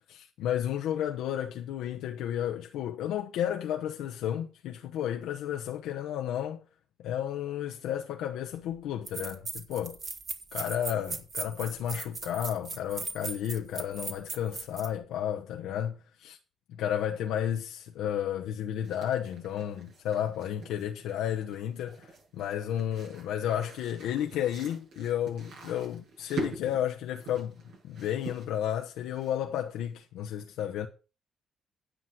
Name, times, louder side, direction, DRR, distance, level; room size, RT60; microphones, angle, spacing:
voice 1, 0.1-6.6 7.0-10.0 10.5-16.4 16.8-27.5 27.8-30.9, left 10 dB, 90° left, 0.9 m, -32 dB
sound 1, 8.5-8.6 9.1-14.9, right 4 dB, 40° right, 1.9 m, -38 dB
sound 2, 18.8-29.6, right 3 dB, 80° right, 7.3 m, -44 dB
10.0 x 7.3 x 5.9 m
cardioid pair, 90°, 0 cm